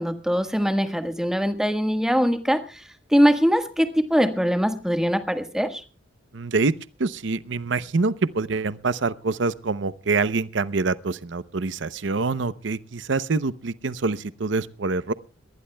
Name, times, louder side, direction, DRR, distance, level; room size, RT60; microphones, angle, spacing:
voice 1, 0.0-2.8 3.1-5.8, equal, 5° right, 1.4 m, -22 dB
voice 2, 6.3-6.7 7.0-15.1, right 3 dB, 65° right, 0.7 m, -25 dB
22.5 x 19.0 x 2.2 m
head